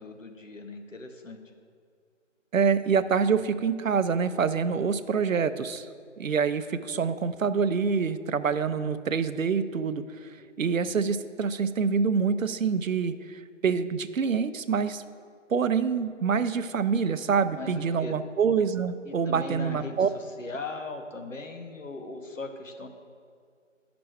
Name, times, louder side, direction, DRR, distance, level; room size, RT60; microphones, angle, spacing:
voice 1, 0.0-1.4 17.5-18.2 19.0-22.9, left 2 dB, 75° left, 5 dB, 1.0 m, -39 dB
voice 2, 2.5-5.9 6.2-10.3 10.6-15.0 15.5-20.1, right 6 dB, 85° right, 12 dB, 0.6 m, -26 dB
10.0 x 6.0 x 3.3 m, 2.1 s
figure-of-eight pair, 175°, 39 cm